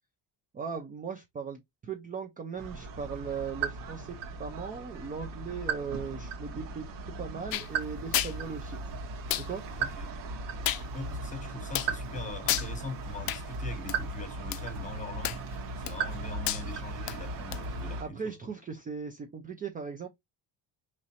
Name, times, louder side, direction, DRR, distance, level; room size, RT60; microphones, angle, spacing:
voice 1, 0.5-8.8 9.4-9.7 18.0-20.1, right 6 dB, 20° right, 0.3 m, -38 dB
sound 1, 2.6-18.0, right 4 dB, 85° right, 1.4 m, -37 dB
sound 2, 7.5-7.7 8.1-8.3 9.3-9.5 10.7-10.8 11.7-11.9 12.5-12.7 13.3-13.4 13.9-14.0 14.5-14.6 15.2-15.5 15.9-16.2 16.5-16.6 17.1-17.2 17.5-17.6, left 13 dB, 55° left, 0.5 m, -30 dB
voice 2, 10.9-15.4 15.8-18.2, left 1 dB, 20° left, 0.8 m, -41 dB
4.9 x 3.1 x 2.7 m
cardioid pair, 170°, 42 cm